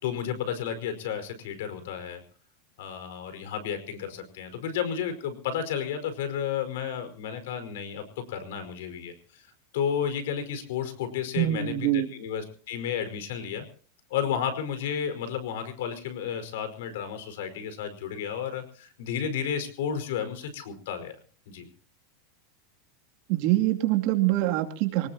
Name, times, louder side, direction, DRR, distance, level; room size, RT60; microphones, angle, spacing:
voice 1, 0.0-2.2 2.8-13.6 14.1-21.1 21.5-21.7, left 8 dB, 75° left, 9 dB, 5.0 m, -32 dB
voice 2, 11.4-12.1 23.3-25.1, right 15 dB, 50° right, 4 dB, 2.7 m, -24 dB
24.5 x 19.0 x 2.9 m, 0.42 s
supercardioid pair, 155°, 0 cm